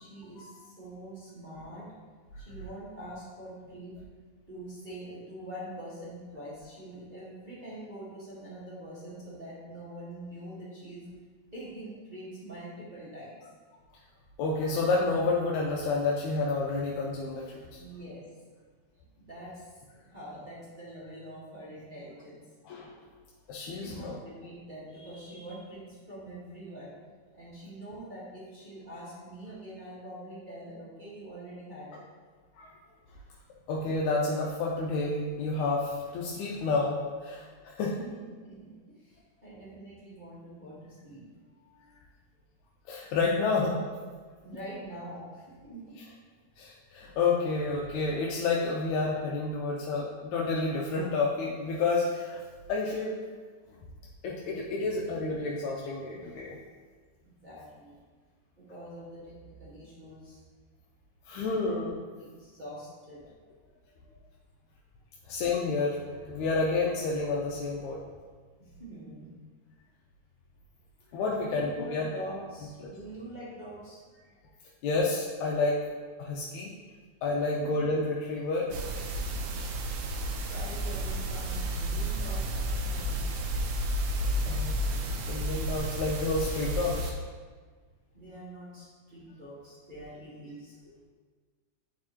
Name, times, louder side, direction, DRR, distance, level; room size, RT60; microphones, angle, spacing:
voice 1, 0.0-1.9 2.4-4.0 4.5-11.1 11.5-13.4 17.8-18.4 19.2-22.4 23.6-26.9 27.3-32.0 37.8-42.0 44.4-46.0 53.8-53.9 54.8-54.9 56.1-56.3 57.2-58.0 58.6-60.4 61.4-61.9 62.4-63.3 68.6-69.3 71.3-74.0 77.6-77.7 80.5-83.4 88.1-90.8, right 1 dB, 25° right, -10 dB, 1.1 m, -45 dB
voice 2, 14.4-17.8 22.7-22.9 23.5-24.1 32.6-32.7 33.7-37.9 42.9-43.8 46.6-52.4 52.7-53.1 54.2-56.6 61.3-61.9 65.3-66.0 66.2-68.0 71.1-72.1 74.8-75.8 76.2-76.7 77.2-78.7 84.5-87.1, left 3 dB, 80° left, -3 dB, 2.0 m, -29 dB
sound 1, 78.7-87.1, right 1 dB, 75° right, 1.4 m, -31 dB
9.6 x 4.3 x 3.0 m, 1.5 s
omnidirectional pair, 3.4 m